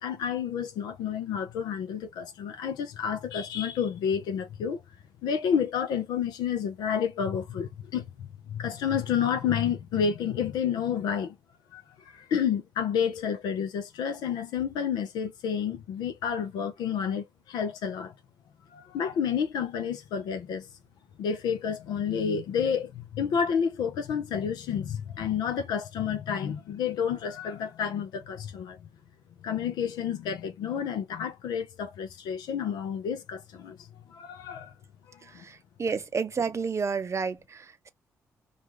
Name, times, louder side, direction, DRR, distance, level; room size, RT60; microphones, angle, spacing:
voice 1, 0.0-4.8 5.2-11.4 11.7-18.1 18.7-20.7 21.2-28.8 29.4-33.8 34.1-34.7 35.3-35.4, left 7 dB, 85° left, 0.6 m, -30 dB
voice 2, 35.2-37.9, right 5 dB, 45° right, 0.5 m, -31 dB
2.4 x 2.3 x 3.0 m
supercardioid pair, 45°, 7 cm